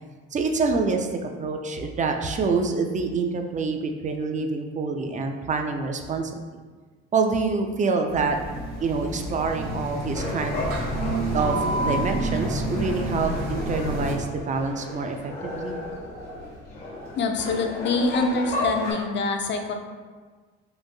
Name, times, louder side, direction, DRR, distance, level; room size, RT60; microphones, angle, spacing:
voice 1, 0.3-1.1 1.4-6.3 7.1-8.4 8.8-10.6 11.3-11.6 11.8-15.8, right 4 dB, 25° right, 4 dB, 0.4 m, -26 dB
sound 1, 8.1-14.1, right 1 dB, 75° right, 0.8 m, -29 dB
sound 2, 10.1-18.9, left 2 dB, 85° left, 0.9 m, -34 dB
voice 2, 17.1-19.7, left 3 dB, 35° left, 4 dB, 0.5 m, -25 dB
3.7 x 2.5 x 2.6 m, 1.4 s
hypercardioid pair, 60°, 35 cm